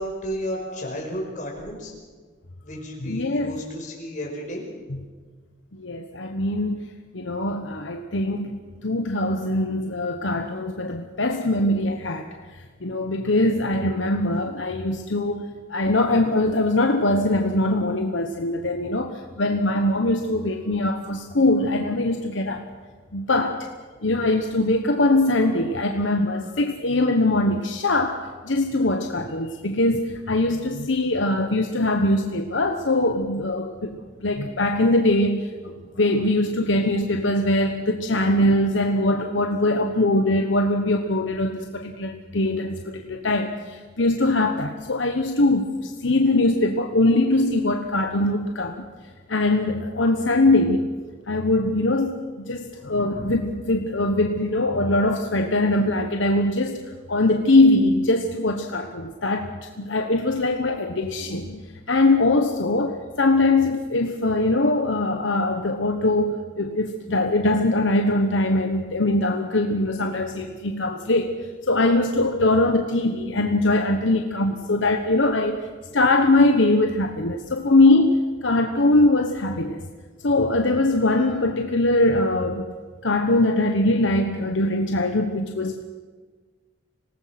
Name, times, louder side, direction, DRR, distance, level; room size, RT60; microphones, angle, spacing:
voice 1, 0.0-1.9 2.6-4.7, equal, 40° left, 0 dB, 5.5 m, -32 dB
voice 2, 3.0-3.5 4.9-5.0 5.7-6.9 7.1-12.3 12.8-15.4 15.7-22.6 23.1-23.7 24.0-28.2 28.4-33.9 34.2-35.7 36.0-48.9 49.3-50.9 51.3-56.8 57.1-59.5 59.8-71.3 71.7-75.6 75.9-79.8 80.2-82.6 83.0-85.8, left 2 dB, 75° left, 5 dB, 1.2 m, -22 dB
26.0 x 18.5 x 6.0 m, 1.4 s
head